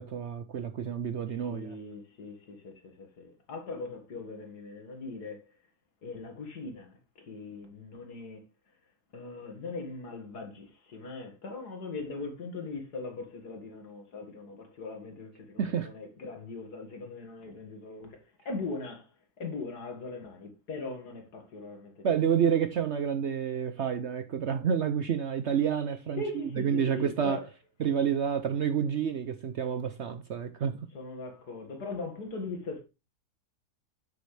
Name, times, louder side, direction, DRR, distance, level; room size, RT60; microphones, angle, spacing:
voice 1, 0.0-1.7 15.6-15.9 22.0-26.2 26.6-27.4 27.8-30.8, right 8 dB, 60° right, 0.7 m, -29 dB
voice 2, 1.2-5.4 6.0-8.4 9.1-18.2 18.5-19.1 19.4-22.0 26.2-27.5 30.9-32.8, left 3 dB, 75° left, 2.5 m, -40 dB
8.1 x 6.6 x 3.3 m
omnidirectional pair, 1.7 m